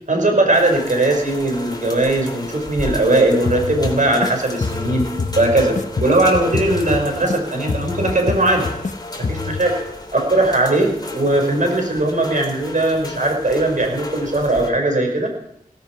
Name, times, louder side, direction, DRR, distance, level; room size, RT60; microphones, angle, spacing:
voice 1, 0.1-5.1 5.4-8.7 9.2-9.8 10.1-15.3, right 2 dB, 60° right, 2 dB, 5.4 m, -19 dB
sound 1, 0.5-14.7, left 2 dB, 25° left, 3.2 m, -33 dB
sound 2, 3.5-4.3 4.6-7.4 7.7-8.9 9.2-9.6, left 4 dB, 55° left, 1.2 m, -26 dB
17.5 x 16.0 x 4.7 m, 0.74 s
wide cardioid pair, 50°, 15 cm